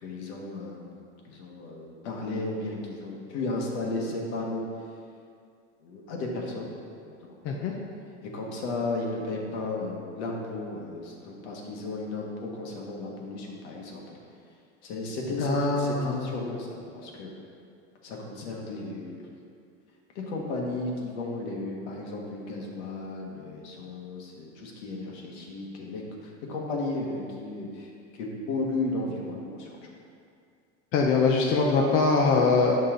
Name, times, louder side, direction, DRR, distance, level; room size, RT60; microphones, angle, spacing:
voice 1, 0.0-0.9 1.2-4.6 5.8-6.7 7.0-7.7 8.3-14.2 14.8-17.3 18.0-19.3 20.1-29.8, left 2 dB, 70° left, -1 dB, 1.6 m, -34 dB
voice 2, 15.4-16.3 30.9-32.7, left 4 dB, 35° left, 0 dB, 0.6 m, -23 dB
8.7 x 5.6 x 3.8 m, 2.3 s
supercardioid pair, 160°, 36 cm